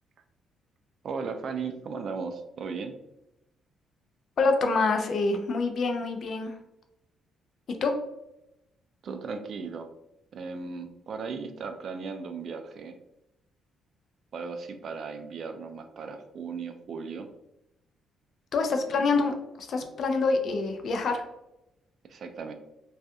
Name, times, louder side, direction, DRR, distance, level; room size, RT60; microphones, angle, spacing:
voice 1, 1.0-3.0 9.0-9.9 10.3-13.0 14.3-17.3 18.9-19.1 22.1-22.5, right 5 dB, 60° right, 7 dB, 0.3 m, -36 dB
voice 2, 4.4-6.5 7.8-7.9 18.5-21.2, left 3 dB, 60° left, 5 dB, 0.4 m, -26 dB
2.6 x 2.3 x 2.2 m, 0.88 s
cardioid pair, 90°, 0 cm